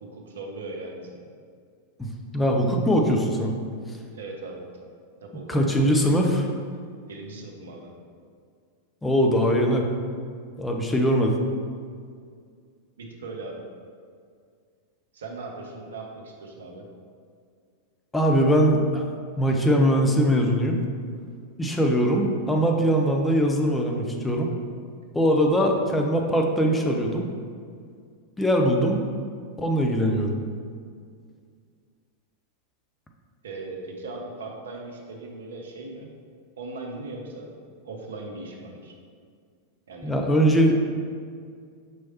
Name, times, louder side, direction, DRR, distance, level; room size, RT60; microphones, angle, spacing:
voice 1, 0.0-1.2 4.1-4.7 5.2-6.0 7.1-7.9 13.0-13.6 15.1-16.9 33.4-36.1 36.6-37.5 37.8-38.9 39.9-40.1, right 2 dB, 65° right, 0 dB, 0.6 m, -38 dB
voice 2, 2.0-3.5 5.5-6.4 9.0-9.9 10.6-11.3 18.1-19.0 19.4-20.8 21.6-24.5 25.1-27.2 28.4-29.0 29.6-30.3 40.0-40.8, equal, 10° left, 1 dB, 0.5 m, -21 dB
5.4 x 3.1 x 2.9 m, 2.1 s
figure-of-eight pair, 90°, 0 cm